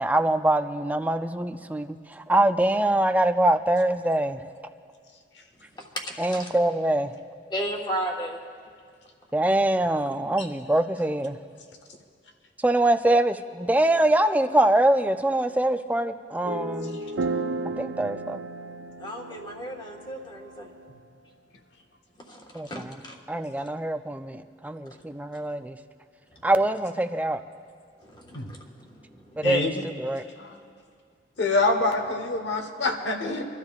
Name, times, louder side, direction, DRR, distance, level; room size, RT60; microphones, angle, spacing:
voice 1, 0.0-4.4 6.2-7.1 9.3-11.4 12.6-17.0 17.8-18.4 22.5-23.0 23.3-25.8 26.4-27.4 29.3-30.2, right 1 dB, 10° right, 8 dB, 0.4 m, -24 dB
voice 2, 5.7-6.5 7.5-8.4 19.0-20.9 22.2-23.2 24.9-25.0 26.3-26.5 28.0-29.5 32.4-32.6, equal, 25° left, 0 dB, 1.4 m, -35 dB
sound 1, 16.4-20.9, right 3 dB, 85° right, 0.5 m, -33 dB
voice 3, 29.4-29.8 30.4-30.6 31.4-33.5, left 2 dB, 80° left, 4 dB, 1.2 m, -26 dB
26.5 x 12.5 x 2.4 m, 2.1 s
head